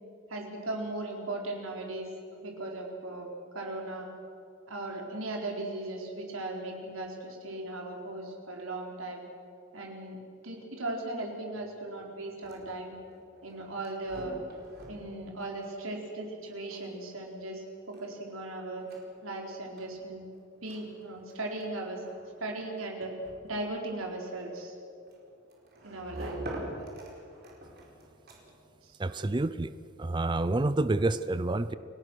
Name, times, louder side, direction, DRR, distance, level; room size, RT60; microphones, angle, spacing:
voice 1, 0.3-3.3 3.5-4.1 4.7-9.2 9.7-10.2 10.4-12.9 13.4-14.3 14.9-18.8 19.2-20.3 20.6-22.0 22.4-23.1 23.4-24.7 25.8-26.4 28.8-29.0, right 2 dB, 80° right, 1 dB, 4.3 m, -37 dB
sound 1, 12.2-28.7, right 1 dB, 50° right, 4.7 m, -47 dB
voice 2, 29.0-29.7 30.0-31.7, right 2 dB, 20° right, 13 dB, 0.5 m, -28 dB
29.5 x 18.0 x 6.3 m, 2.5 s
head